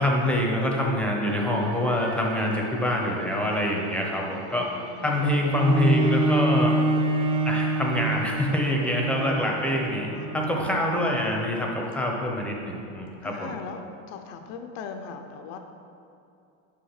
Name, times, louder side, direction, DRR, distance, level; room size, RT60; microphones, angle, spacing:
voice 1, 0.0-4.7 5.0-6.8 7.4-13.6, left 1 dB, 5° left, -1 dB, 0.7 m, -25 dB
sound 1, 1.3-9.9 10.2-10.4, right 4 dB, 45° right, 0.8 m, -44 dB
voice 2, 4.8-5.6 10.1-10.7 13.2-13.8 14.1-15.6, left 6 dB, 50° left, 5 dB, 0.6 m, -40 dB
Bowed string instrument, 5.5-11.1 11.8-11.9, right 2 dB, 15° right, 0.3 m, -26 dB
6.2 x 5.6 x 5.8 m, 2.6 s
supercardioid pair, 140°, 36 cm